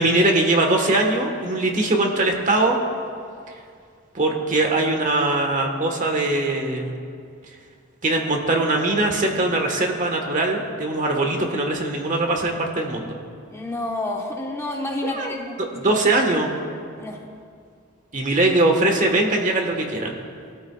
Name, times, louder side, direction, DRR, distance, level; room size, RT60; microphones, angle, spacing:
voice 1, 0.0-2.8 4.1-7.0 8.0-13.2 15.0-15.3 15.6-16.5 18.1-20.1, right 2 dB, 40° right, 2 dB, 1.4 m, -21 dB
voice 2, 13.5-15.5 15.8-16.0 17.0-17.2, left 2 dB, 15° left, 0 dB, 1.2 m, -29 dB
20.5 x 13.5 x 2.4 m, 2.2 s
head